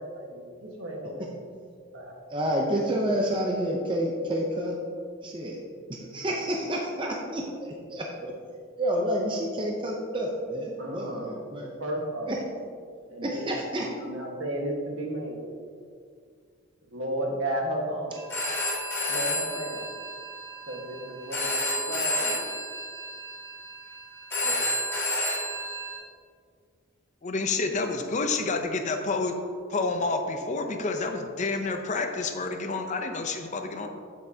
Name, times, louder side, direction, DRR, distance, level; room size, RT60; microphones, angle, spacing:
voice 1, 0.0-1.3 1.9-2.1 10.8-11.4 11.8-12.3 13.1-15.4 16.9-18.2 19.1-19.9 20.7-22.4 24.4-24.5 27.8-27.9, right 1 dB, 60° right, -1 dB, 1.4 m, -34 dB
voice 2, 2.3-4.8 5.2-5.6 6.1-8.3 8.8-11.7 12.3-12.4 13.2-13.9, equal, 25° right, -1 dB, 0.6 m, -29 dB
Telephone, 18.1-26.0, left 1 dB, 10° left, 1.9 m, -31 dB
voice 3, 27.2-29.3 29.7-33.9, left 3 dB, 35° left, 5 dB, 0.5 m, -29 dB
8.3 x 8.0 x 2.8 m, 2.2 s
head